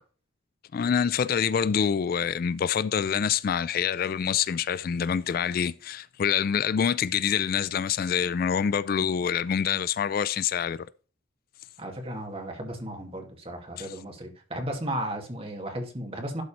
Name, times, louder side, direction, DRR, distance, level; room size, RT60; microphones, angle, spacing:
voice 1, 0.7-10.9 13.8-13.9, left 7 dB, 45° left, 0.3 m, -26 dB
voice 2, 11.8-16.4, right 1 dB, 30° right, 2.2 m, -35 dB
12.0 x 4.2 x 4.2 m
head